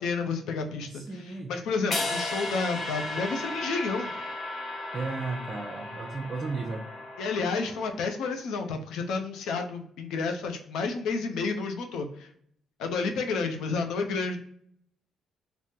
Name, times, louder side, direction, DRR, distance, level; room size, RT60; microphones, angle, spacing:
voice 1, 0.0-1.0 1.5-4.1 7.2-12.3 12.8-14.4, left 4 dB, 85° left, 4 dB, 0.5 m, -30 dB
voice 2, 0.9-1.6 2.9-3.1 4.9-6.9, right 3 dB, 40° right, 1 dB, 0.4 m, -34 dB
sound 1, 1.9-8.0, left 2 dB, 50° left, 0.7 m, -35 dB
3.5 x 2.0 x 2.7 m, 0.66 s
cardioid pair, 90°, 0 cm